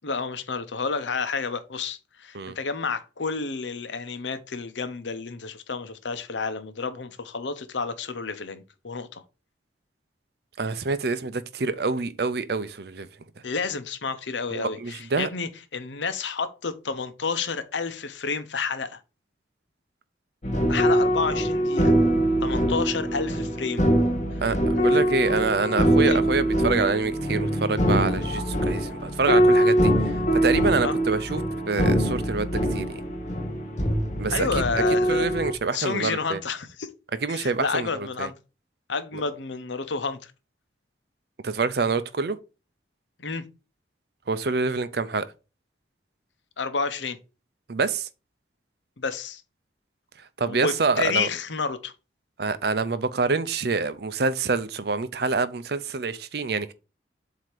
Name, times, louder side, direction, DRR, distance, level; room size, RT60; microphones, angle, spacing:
voice 1, 0.0-9.2 13.4-19.0 20.7-21.9 22.4-23.9 24.8-25.0 26.0-26.2 30.8-30.9 34.3-35.3 35.7-36.9 37.3-38.3 38.9-40.3 43.2-43.4 46.6-47.2 49.0-49.4 50.5-51.9, left 4 dB, 85° left, 0.9 m, -30 dB
voice 2, 10.6-13.1 14.5-15.3 24.4-33.0 34.2-34.5 34.8-34.9 35.1-36.4 37.2-38.3 39.1-39.2 41.4-42.4 44.3-45.3 47.7-48.1 50.4-51.3 52.4-56.7, right 4 dB, 60° right, 0.6 m, -26 dB
sound 1, 20.4-35.5, equal, 40° left, 1.2 m, -23 dB
7.6 x 2.9 x 4.9 m
head